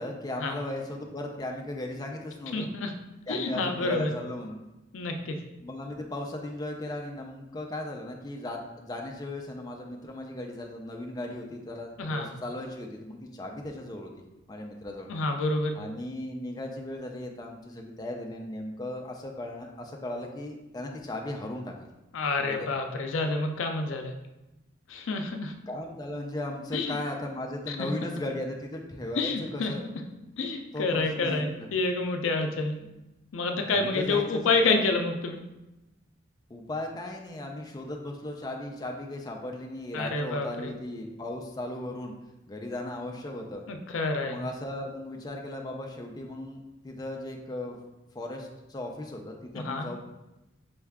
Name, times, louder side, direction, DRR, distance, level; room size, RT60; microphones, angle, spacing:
voice 1, 0.0-2.7 3.3-4.6 5.6-14.1 14.5-15.1 15.8-21.7 22.5-22.7 25.7-29.8 30.7-31.7 32.8-32.9 33.6-34.5 36.5-42.1 42.5-43.6 44.3-47.8 48.1-50.0, left 1 dB, 20° left, 1 dB, 0.4 m, -37 dB
voice 2, 2.5-2.9 3.3-4.1 4.9-5.4 12.0-12.3 15.1-15.8 22.1-24.1 24.9-25.5 26.7-27.0 27.7-27.9 29.2-29.7 30.4-32.7 33.3-35.4 39.9-40.7 43.7-44.4 49.5-49.9, left 3 dB, 80° left, 5 dB, 0.5 m, -28 dB
5.3 x 2.3 x 3.4 m, 0.98 s
head